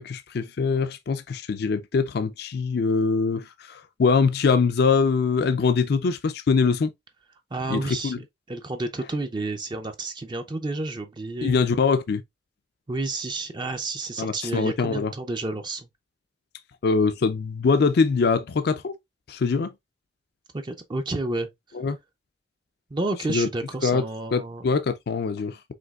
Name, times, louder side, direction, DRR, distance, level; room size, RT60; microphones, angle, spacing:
voice 1, 0.0-6.9 7.7-8.2 11.4-12.2 14.2-15.1 16.8-19.0 19.3-19.7 21.7-22.0 23.3-23.5 23.8-24.0 24.3-25.7, left 4 dB, 60° left, 0.4 m, -23 dB
voice 2, 7.5-8.1 8.5-11.6 12.9-15.9 20.5-21.5 22.9-24.7, right 2 dB, 25° right, 0.5 m, -30 dB
5.1 x 3.4 x 2.3 m
head